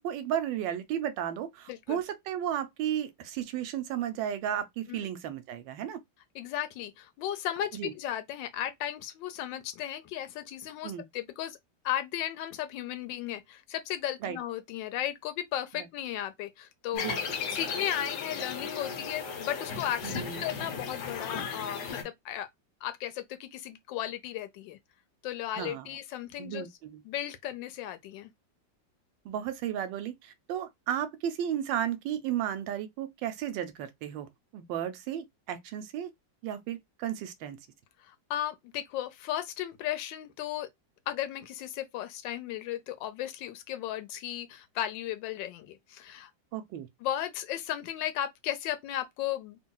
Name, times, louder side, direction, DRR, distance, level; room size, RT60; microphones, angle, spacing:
voice 1, 0.0-6.0 7.7-7.9 10.8-11.0 14.2-14.4 15.7-15.9 16.9-17.2 20.0-20.5 25.6-26.0 26.4-27.0 29.2-36.1 36.4-37.6 46.5-46.9, right 10 dB, 90° right, 1.3 m, -34 dB
voice 2, 1.7-2.0 4.9-5.0 6.3-11.6 11.8-17.1 17.5-22.5 22.8-24.8 25.2-26.7 27.1-28.3 38.0-40.7 41.1-46.3 47.0-49.6, left 11 dB, 85° left, 1.3 m, -35 dB
sound 1, 16.9-22.0, left 5 dB, 65° left, 1.4 m, -35 dB
2.8 x 2.7 x 2.2 m
omnidirectional pair, 2.0 m